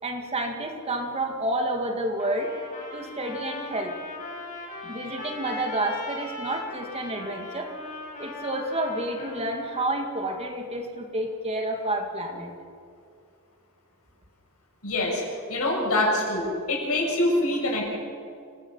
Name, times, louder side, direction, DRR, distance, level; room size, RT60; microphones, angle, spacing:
voice 1, 0.0-2.5 2.9-3.9 4.8-7.7 8.2-12.5, right 1 dB, 30° right, 3 dB, 2.2 m, -29 dB
Trumpet, 2.2-9.9, left 2 dB, 40° left, 5.4 m, -39 dB
voice 2, 14.8-15.2 15.5-17.9, left 1 dB, 80° left, -1 dB, 7.1 m, -25 dB
28.0 x 18.5 x 5.7 m, 2.4 s
head